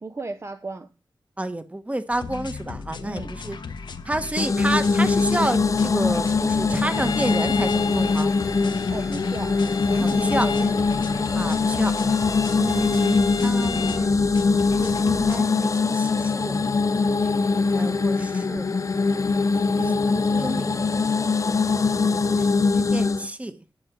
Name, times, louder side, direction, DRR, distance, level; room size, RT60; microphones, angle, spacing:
voice 1, 0.0-0.9 3.0-3.4 8.9-9.6 9.9-10.9 12.8-13.0 19.7-21.1, right 3 dB, 35° right, 0.7 m, -36 dB
voice 2, 1.4-3.6 4.0-8.3 10.2-10.5 11.3-11.9 12.5-14.2 14.8-16.6 17.0-18.7 19.7-19.8 20.4-20.7 21.9-22.5 22.7-23.6, right 1 dB, 15° right, 1.2 m, -30 dB
sound 1, 2.1-15.4, left 4 dB, 80° left, 1.1 m, -36 dB
sound 2, 4.4-23.3, left 4 dB, 45° left, 0.5 m, -22 dB
Bowed string instrument, 6.8-14.1, left 5 dB, 60° left, 1.2 m, -36 dB
9.6 x 6.7 x 6.2 m
wide cardioid pair, 85°, 8 cm